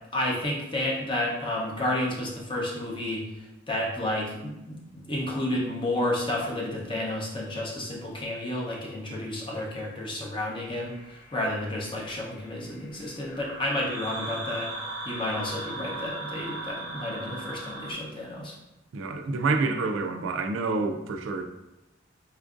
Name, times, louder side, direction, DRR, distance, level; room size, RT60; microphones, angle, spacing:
voice 1, 0.1-14.7 15.0-18.5, left 1 dB, 25° left, -2 dB, 0.7 m, -31 dB
sound 1, 10.7-17.9, right 2 dB, 55° left, 1.3 m, -39 dB
voice 2, 18.9-21.4, right 3 dB, 75° right, 6 dB, 0.3 m, -28 dB
4.3 x 2.5 x 2.4 m, 0.95 s
head